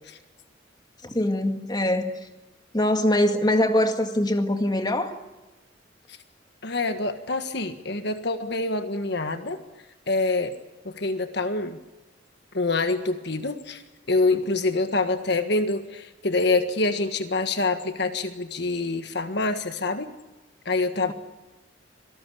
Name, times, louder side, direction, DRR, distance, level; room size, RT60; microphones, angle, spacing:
voice 1, 1.0-2.2 2.7-5.2 21.1-21.2, left 1 dB, 20° left, 1.9 m, -23 dB
voice 2, 6.6-9.6 10.1-10.5 11.0-11.8 12.5-13.8 14.1-20.1 20.6-21.1, left 3 dB, 60° left, 1.6 m, -26 dB
26.0 x 19.0 x 8.5 m
head